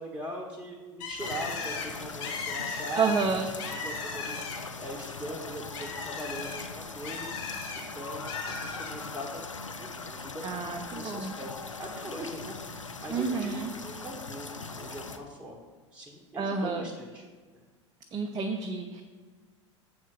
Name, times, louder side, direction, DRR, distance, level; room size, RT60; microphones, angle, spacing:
voice 1, 0.0-3.1 3.6-7.3 7.8-9.4 9.8-11.5 11.8-14.5 14.8-15.6 15.9-17.3, right 1 dB, 10° right, -1 dB, 1.2 m, -41 dB
Bird, 1.0-4.8 5.2-7.8 8.3-8.9, left 5 dB, 50° left, 1.6 m, -37 dB
sound 1, 1.2-15.2, left 4 dB, 85° left, 0.6 m, -40 dB
voice 2, 2.9-3.5 10.4-11.3 13.1-13.7 16.4-16.8 18.1-19.0, right 5 dB, 25° right, 3 dB, 0.7 m, -29 dB
7.3 x 4.5 x 6.0 m, 1.5 s
figure-of-eight pair, 80°, 16 cm